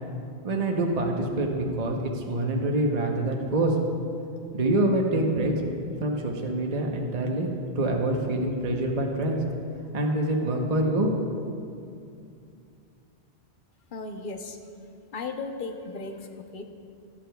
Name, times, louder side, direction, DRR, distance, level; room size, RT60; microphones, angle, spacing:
voice 1, 0.4-3.7 4.5-5.5 6.0-7.5 7.7-9.4 9.9-11.1, right 1 dB, 40° right, 0 dB, 0.9 m, -25 dB
voice 2, 13.9-14.6 15.1-16.6, left 3 dB, 55° left, 5 dB, 0.9 m, -36 dB
21.0 x 8.7 x 2.3 m, 2.5 s
omnidirectional pair, 1.1 m